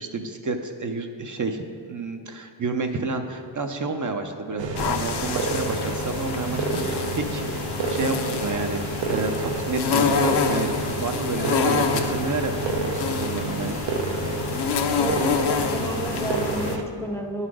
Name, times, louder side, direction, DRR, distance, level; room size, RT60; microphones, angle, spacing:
voice 1, 0.0-7.6 7.9-8.2 8.4-13.8, right 3 dB, 40° right, 5 dB, 0.6 m, -30 dB
sound 1, 4.6-16.8, right 3 dB, 70° right, 0.7 m, -29 dB
sound 2, 4.8-16.8, left 5 dB, 60° left, 0.6 m, -27 dB
voice 2, 15.5-17.5, equal, 5° left, 2 dB, 0.5 m, -31 dB
11.0 x 4.1 x 4.8 m, 2.4 s
wide cardioid pair, 85°, 46 cm